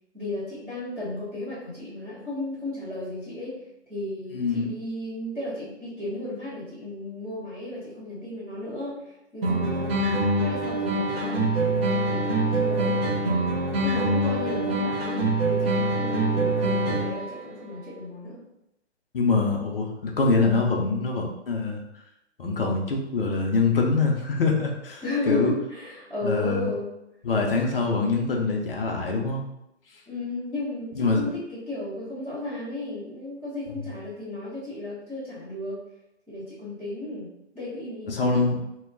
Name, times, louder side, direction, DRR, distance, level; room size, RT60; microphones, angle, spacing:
voice 1, 0.1-13.0 13.8-18.5 25.0-26.9 30.1-35.8 36.3-38.4, left 2 dB, 5° right, -22 dB, 0.4 m, -34 dB
voice 2, 4.3-4.7 19.1-21.8 22.4-25.5 26.2-26.7 27.2-29.4 30.9-31.2 33.8-33.9 38.1-38.6, left 3 dB, 55° left, 0 dB, 0.6 m, -24 dB
sound 1, 9.4-17.4, right 2 dB, 55° right, 0.9 m, -24 dB
2.3 x 2.1 x 3.7 m, 0.84 s
figure-of-eight pair, 130°, 35 cm